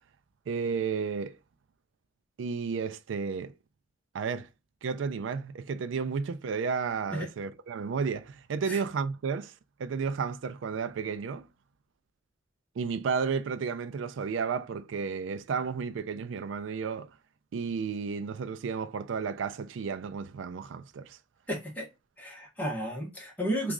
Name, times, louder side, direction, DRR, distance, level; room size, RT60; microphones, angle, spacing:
voice 1, 0.5-1.4 2.4-3.5 4.1-4.5 4.8-9.5 9.8-11.5 12.8-17.2 17.5-21.2, right 5 dB, 85° right, 0.4 m, -32 dB
voice 2, 21.5-21.9 22.2-23.7, equal, 10° left, 1.1 m, -33 dB
3.0 x 2.3 x 3.6 m
head